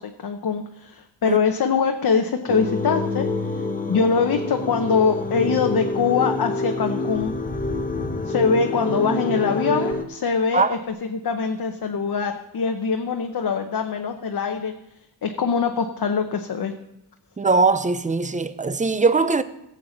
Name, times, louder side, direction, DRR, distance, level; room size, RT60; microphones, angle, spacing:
voice 1, 0.0-3.3 3.9-7.3 8.3-10.8 11.1-14.7 15.2-16.7, left 5 dB, 55° left, 0.7 m, -23 dB
sound 1, 2.5-10.0, left 2 dB, 20° left, 0.7 m, -27 dB
sound 2, 7.1-9.9, left 3 dB, 80° left, 1.5 m, -35 dB
voice 2, 17.4-19.4, right 4 dB, 20° right, 0.4 m, -20 dB
16.5 x 7.5 x 3.9 m
wide cardioid pair, 145°, 43 cm